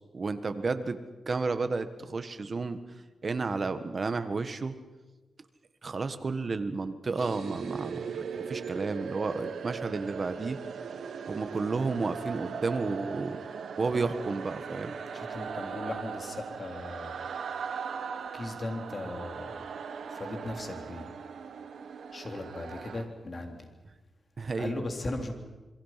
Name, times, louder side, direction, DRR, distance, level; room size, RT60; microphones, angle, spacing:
voice 1, 0.1-1.0 1.3-2.8 3.2-4.7 5.8-10.6 11.3-13.4 13.8-14.9 24.4-24.8, right 4 dB, 40° right, 10 dB, 1.5 m, -32 dB
sound 1, 7.2-23.0, right 6 dB, 80° right, 1.8 m, -39 dB
voice 2, 15.1-17.2 18.3-19.6 20.1-21.1 22.1-23.7 24.6-25.3, left 2 dB, 35° left, 4 dB, 3.4 m, -37 dB
27.5 x 22.5 x 5.9 m, 1.2 s
wide cardioid pair, 110°, 0 cm